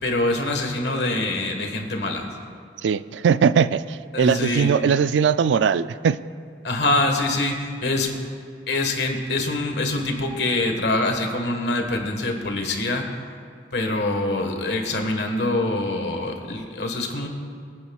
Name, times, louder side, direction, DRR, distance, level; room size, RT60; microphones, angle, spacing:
voice 1, 0.0-2.3 4.1-4.7 6.6-8.1 8.7-13.0 13.7-17.3, left 2 dB, 75° left, 3 dB, 1.5 m, -24 dB
voice 2, 2.8-6.2, right 6 dB, 90° right, 15 dB, 0.3 m, -20 dB
22.0 x 9.6 x 2.4 m, 2.3 s
head